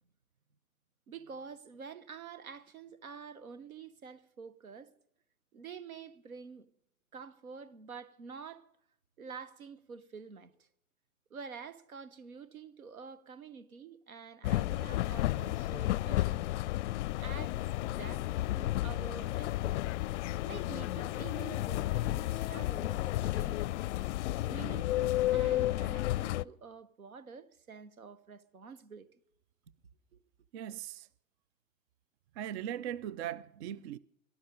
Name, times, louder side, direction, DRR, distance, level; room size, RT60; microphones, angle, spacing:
voice 1, 1.1-4.9 5.5-6.7 7.1-8.7 9.2-10.7 11.3-16.4 17.2-17.6 17.9-18.3 18.5-19.8 20.4-23.7 24.5-29.2 30.1-30.2, right 6 dB, 85° right, 1.1 m, -48 dB
sound 1, 14.4-26.4, left 15 dB, 60° left, 0.5 m, -32 dB
voice 2, 30.5-31.1 32.3-34.0, right 10 dB, 50° right, 0.6 m, -39 dB
18.0 x 12.5 x 5.2 m
figure-of-eight pair, 95°, 42 cm